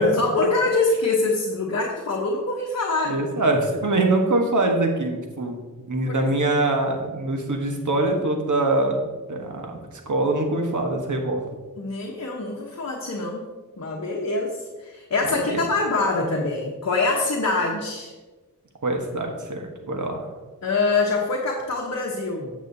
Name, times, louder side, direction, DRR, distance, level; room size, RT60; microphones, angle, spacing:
voice 1, 0.0-3.2 6.0-6.3 11.8-13.4 13.8-18.1 20.6-22.5, left 3 dB, 50° left, -2 dB, 1.1 m, -24 dB
voice 2, 3.1-5.6 5.9-9.0 9.3-9.8 10.1-11.4 15.3-15.6 18.8-20.3, right 2 dB, 60° right, 2 dB, 1.4 m, -23 dB
9.2 x 7.4 x 2.8 m, 1.3 s
wide cardioid pair, 65°, 34 cm